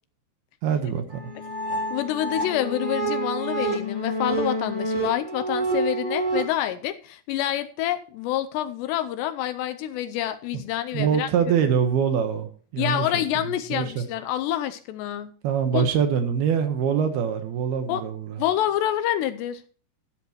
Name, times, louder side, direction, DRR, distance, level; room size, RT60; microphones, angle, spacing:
voice 1, 0.6-1.3 10.9-13.2 13.7-14.0 15.4-18.4, right 7 dB, 70° right, 8 dB, 2.8 m, -24 dB
sound 1, 1.1-6.4, right 2 dB, 15° right, 2.3 m, -28 dB
voice 2, 1.9-11.3 12.8-15.3 15.7-15.9 17.9-18.0 18.4-19.6, left 12 dB, 80° left, 11 dB, 2.7 m, -27 dB
13.0 x 12.0 x 3.1 m, 0.42 s
omnidirectional pair, 5.3 m